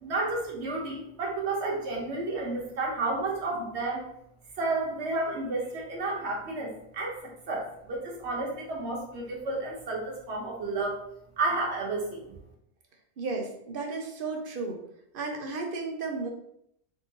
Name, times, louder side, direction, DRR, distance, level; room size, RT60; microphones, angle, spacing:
voice 1, 0.0-4.1 4.6-11.0 11.4-12.3, right 2 dB, 85° right, -1 dB, 1.2 m, -31 dB
voice 2, 13.2-14.8 15.1-16.3, right 3 dB, 60° right, 2 dB, 0.8 m, -33 dB
3.6 x 2.7 x 2.8 m, 0.74 s
omnidirectional pair, 1.1 m